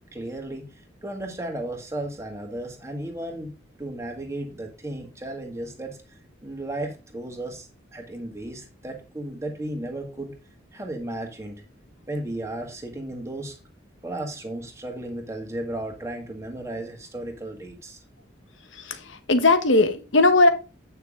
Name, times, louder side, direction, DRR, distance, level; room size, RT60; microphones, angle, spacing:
voice 1, 0.0-3.5 3.8-6.0 6.4-10.3 10.7-11.6 12.1-13.6 14.0-18.0, right 1 dB, 15° right, 2 dB, 1.8 m, -34 dB
voice 2, 18.7-20.5, left 2 dB, 80° left, 9 dB, 1.3 m, -19 dB
9.3 x 5.8 x 3.7 m, 0.31 s
head